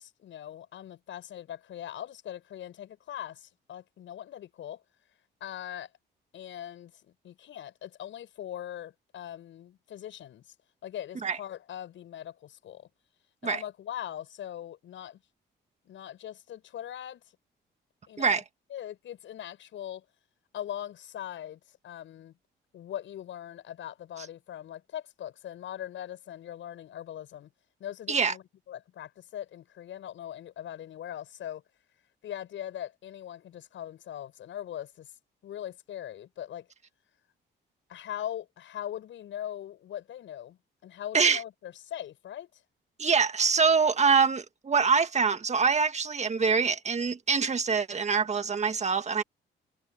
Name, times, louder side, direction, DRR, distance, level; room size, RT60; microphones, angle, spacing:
voice 1, 0.0-4.8 5.4-5.9 6.3-10.5 10.8-12.9 13.4-15.2 15.8-17.2 18.1-18.4 18.7-20.0 20.5-22.3 22.7-27.5 27.8-31.6 32.2-35.1 35.4-36.7 37.9-42.6, left 11 dB, 75° left, 7.9 m, -41 dB
voice 2, 43.0-49.2, right 5 dB, 35° right, 1.8 m, -24 dB
cardioid pair, 90°, 20 cm